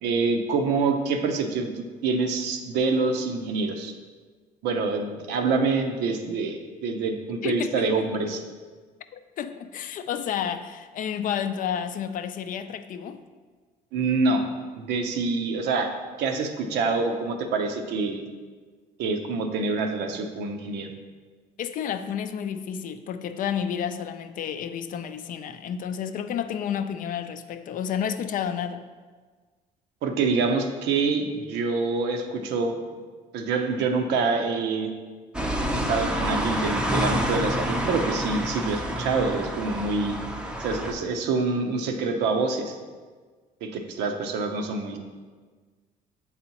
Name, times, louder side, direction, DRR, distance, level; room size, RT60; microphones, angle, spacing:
voice 1, 0.0-3.9 4.6-8.4 13.9-14.4 14.7-15.9 16.2-18.3 19.0-20.9 30.0-32.8 33.3-34.9 35.7-40.1 40.6-42.7 43.6-45.0, right 4 dB, 85° right, 5 dB, 0.7 m, -26 dB
voice 2, 7.4-7.9 9.1-13.2 21.6-28.8, left 8 dB, 55° left, 10 dB, 0.4 m, -31 dB
sound 1, 35.3-40.9, equal, 5° right, 0.5 m, -28 dB
7.8 x 4.1 x 2.9 m, 1.5 s
cardioid pair, 110°, 17 cm